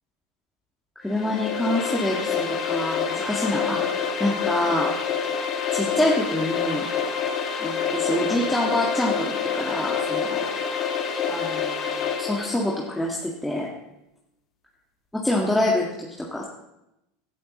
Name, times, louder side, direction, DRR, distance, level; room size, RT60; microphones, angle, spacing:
voice 1, 1.0-3.8 4.2-4.9 5.7-6.9 7.6-10.5 11.3-11.9 12.2-13.7 15.1-16.5, left 1 dB, 5° left, -3 dB, 1.8 m, -26 dB
sound 1, 1.1-12.7, left 6 dB, 40° left, 1.9 m, -27 dB
16.0 x 13.0 x 3.2 m, 0.89 s
hypercardioid pair, 85°, 0 cm